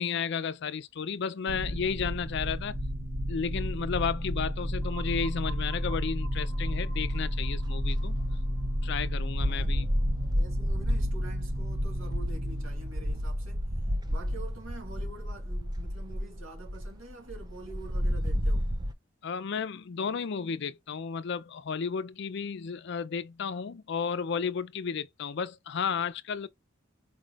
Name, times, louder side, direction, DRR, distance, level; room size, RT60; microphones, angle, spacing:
voice 1, 0.0-2.8 3.3-8.2 8.8-9.9 19.2-26.5, left 6 dB, 60° left, 0.4 m, -33 dB
sound 1, 1.5-14.5, equal, 55° right, 0.9 m, -32 dB
sound 2, 4.8-10.5, right 2 dB, 15° left, 1.0 m, -51 dB
sound 3, 6.5-7.0 7.3-18.9, equal, 20° right, 0.5 m, -32 dB
voice 2, 9.4-9.8 10.3-13.6 14.1-18.7, right 2 dB, 80° right, 2.1 m, -46 dB
4.7 x 3.3 x 2.4 m
head